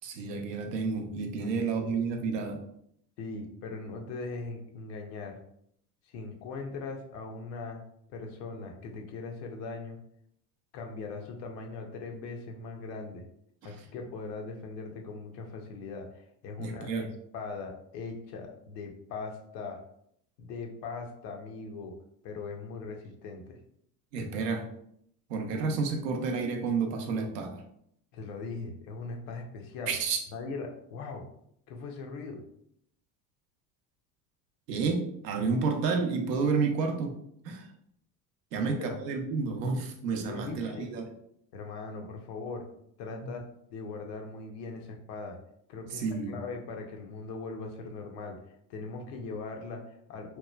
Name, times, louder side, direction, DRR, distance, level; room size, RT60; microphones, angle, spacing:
voice 1, 0.0-2.6 13.6-13.7 16.6-17.1 24.1-24.7 25.3-27.6 29.9-30.2 34.7-37.2 37.4-37.7 38.5-41.1 43.2-43.3 45.9-46.4, right 4 dB, 90° right, 4 dB, 0.6 m, -30 dB
voice 2, 3.2-5.4 6.1-7.8 8.1-10.0 10.7-13.2 13.6-17.1 17.3-19.8 20.4-21.9 22.2-23.6 28.1-30.0 30.3-31.2 31.7-32.4 38.6-39.0 40.3-40.9 41.5-42.7 43.0-43.4 43.7-45.4 45.7-48.4 48.7-50.4, left 4 dB, 75° left, 2 dB, 0.7 m, -40 dB
3.0 x 2.1 x 2.2 m, 0.71 s
hypercardioid pair, 80°, 48 cm